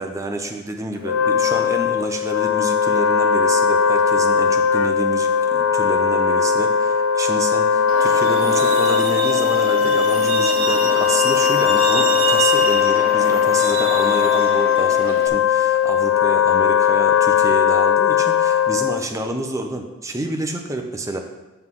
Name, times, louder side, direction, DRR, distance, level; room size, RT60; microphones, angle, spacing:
voice 1, 0.0-21.2, right 2 dB, 15° right, 3 dB, 0.7 m, -28 dB
Wind instrument woodwind instrument, 1.0-19.1, left 7 dB, 85° left, 0.4 m, -18 dB
Truck, 7.9-15.3, right 4 dB, 80° right, 0.8 m, -26 dB
7.9 x 6.4 x 3.7 m, 1.1 s
head